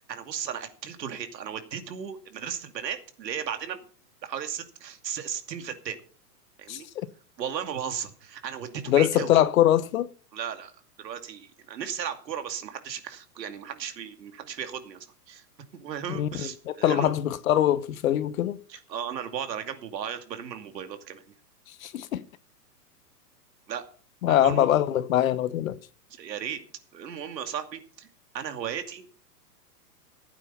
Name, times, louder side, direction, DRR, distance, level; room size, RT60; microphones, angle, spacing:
voice 1, 0.0-3.8 4.2-6.0 6.6-6.9 7.4-9.4 10.3-10.7 11.0-15.4 15.7-17.1 18.7-21.2 23.7-23.8 24.3-24.7 26.1-26.6 26.9-28.1 28.3-29.1, right 8 dB, 85° right, 2.6 m, -35 dB
voice 2, 8.9-10.1 16.1-16.3 16.7-18.6 21.8-22.2 24.2-25.8, left 12 dB, 55° left, 1.0 m, -23 dB
16.0 x 9.0 x 5.6 m
hypercardioid pair, 165°, 49 cm